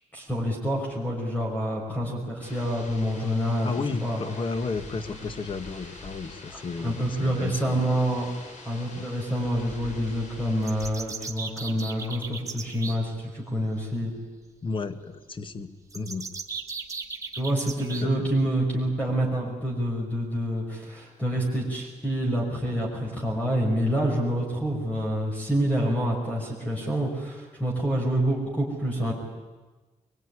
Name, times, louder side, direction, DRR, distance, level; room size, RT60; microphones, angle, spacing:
voice 1, 0.1-3.7 4.0-4.2 5.1-5.2 6.8-8.3 8.6-14.1 17.3-29.1, equal, 10° left, -1 dB, 5.9 m, -27 dB
sound 1, 2.4-10.9, left 2 dB, 70° left, 5.6 m, -44 dB
voice 2, 3.6-7.8 8.9-9.1 14.6-16.3 18.0-18.3, left 4 dB, 40° left, 11 dB, 1.6 m, -33 dB
sound 2, 10.6-13.0 15.9-18.0, right 4 dB, 25° right, 2.2 m, -37 dB
23.0 x 23.0 x 9.9 m, 1.3 s
wide cardioid pair, 130°, 13 cm